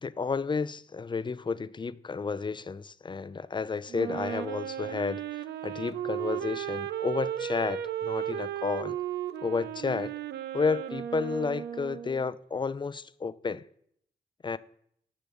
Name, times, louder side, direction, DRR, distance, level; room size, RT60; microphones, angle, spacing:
voice 1, 0.0-9.0 9.4-10.1 10.5-13.7 14.4-14.6, left 5 dB, 25° left, 0.5 m, -31 dB
Wind instrument woodwind instrument, 3.9-12.3, right 10 dB, 85° right, 0.5 m, -35 dB
6.9 x 5.9 x 7.0 m
supercardioid pair, 50°, 17 cm